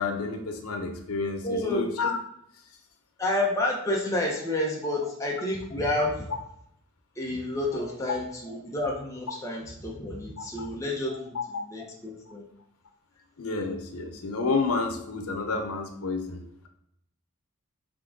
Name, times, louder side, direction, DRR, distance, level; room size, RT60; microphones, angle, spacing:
voice 1, 0.0-2.2 10.4-10.7 11.1-11.4 13.4-16.7, left 4 dB, 90° left, 4 dB, 0.7 m, -30 dB
voice 2, 1.4-1.9 3.2-6.2 7.2-12.4, left 1 dB, 15° left, -2 dB, 0.8 m, -30 dB
3.7 x 3.5 x 3.7 m, 0.74 s
head